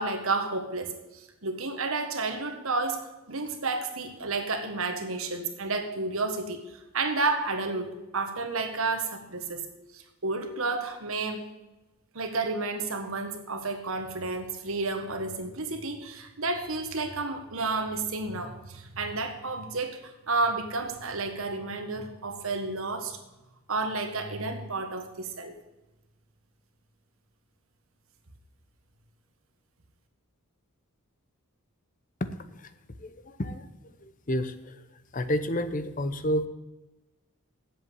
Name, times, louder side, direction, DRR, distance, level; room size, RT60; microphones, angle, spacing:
voice 1, 0.0-3.0 3.3-6.6 6.9-7.9 8.1-9.6 9.9-11.5 12.1-23.2 23.7-25.5, right 3 dB, 65° right, 6 dB, 1.5 m, -31 dB
voice 2, 33.0-33.7 34.0-34.8 35.1-36.5, equal, 35° left, 11 dB, 0.7 m, -30 dB
7.9 x 7.8 x 8.2 m, 1.0 s
head